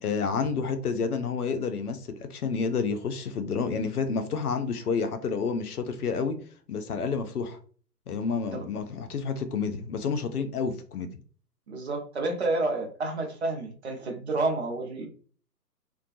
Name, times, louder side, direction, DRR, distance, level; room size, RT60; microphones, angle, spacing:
voice 1, 0.0-6.4 6.7-7.6 8.1-11.1, left 5 dB, 65° left, 0.6 m, -29 dB
voice 2, 11.7-15.1, right 2 dB, 45° right, 0.6 m, -29 dB
2.5 x 2.2 x 2.5 m
figure-of-eight pair, 135°, 50 cm